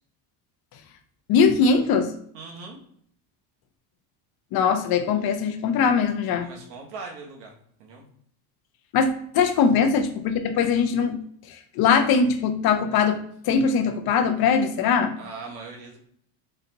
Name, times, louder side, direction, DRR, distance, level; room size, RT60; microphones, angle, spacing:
voice 1, 1.3-2.1 4.5-6.5 8.9-9.1 9.3-11.2 11.5-13.2 13.4-15.1, left 6 dB, 50° left, 6 dB, 0.7 m, -21 dB
voice 2, 2.3-2.8 6.4-7.5 7.8-8.0 9.6-9.7 15.2-16.0, right 4 dB, 85° right, 0 dB, 1.2 m, -40 dB
4.0 x 3.3 x 2.7 m, 0.64 s
supercardioid pair, 110°, 48 cm